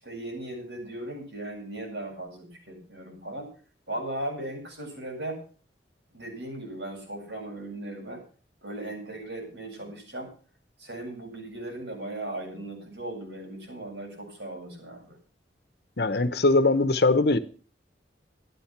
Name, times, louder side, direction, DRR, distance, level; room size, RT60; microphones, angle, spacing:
voice 1, 0.0-3.5 3.9-5.4 6.1-8.2 8.6-10.3 10.8-15.2, right 1 dB, 80° right, 7.8 m, -37 dB
voice 2, 16.0-17.4, left 2 dB, 60° left, 1.1 m, -21 dB
13.5 x 11.5 x 6.0 m
head